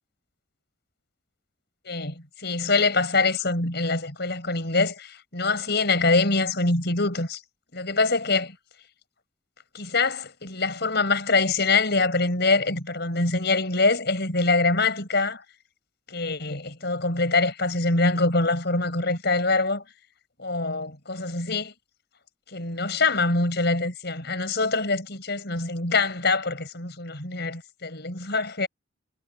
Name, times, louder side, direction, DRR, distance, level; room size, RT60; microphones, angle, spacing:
voice 1, 1.8-7.4 7.7-8.5 9.7-15.4 16.1-19.8 20.4-21.7 22.5-28.7, left 3 dB, 55° left, 6.3 m, -24 dB
head